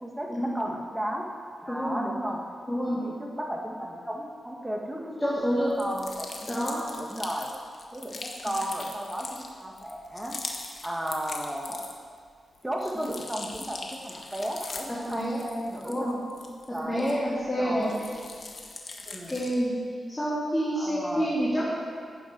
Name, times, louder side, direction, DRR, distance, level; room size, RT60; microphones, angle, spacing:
voice 1, 0.5-1.2 1.6-2.4 2.9-5.5 5.8-6.7 7.0-7.5 7.9-10.4 10.8-11.8 12.6-16.1 16.7-17.1 17.6-18.1 19.1-19.4 20.8-21.3, equal, 10° right, 0 dB, 2.0 m, -34 dB
voice 2, 1.7-2.0 2.7-3.0 5.2-5.7 6.5-6.8 8.4-8.5 12.9-13.1 14.9-15.4 15.8-16.2 16.8-17.9 19.3-19.7 20.1-21.8, equal, 15° left, -8 dB, 3.4 m, -28 dB
sound 1, 5.7-12.2 12.5-17.4 17.8-19.7, left 3 dB, 50° left, 1.6 m, -41 dB
14.5 x 9.1 x 6.2 m, 2.2 s
cardioid pair, 85°, 0 cm